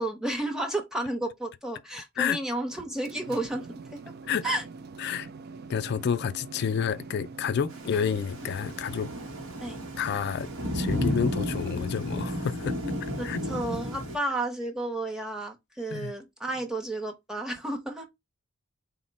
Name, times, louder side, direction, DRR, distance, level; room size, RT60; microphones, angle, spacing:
voice 1, 0.0-4.0 4.4-4.6 9.6-9.8 13.2-18.1, right 1 dB, 5° right, 0.8 m, -32 dB
sound 1, 2.8-11.7, right 4 dB, 45° right, 0.3 m, -44 dB
voice 2, 5.7-9.1 10.0-12.8 13.2-13.4 15.9-16.1, left 7 dB, 50° left, 0.3 m, -29 dB
Thunder / Rain, 7.7-14.2, equal, 65° right, 1.0 m, -33 dB
4.1 x 2.1 x 3.9 m
head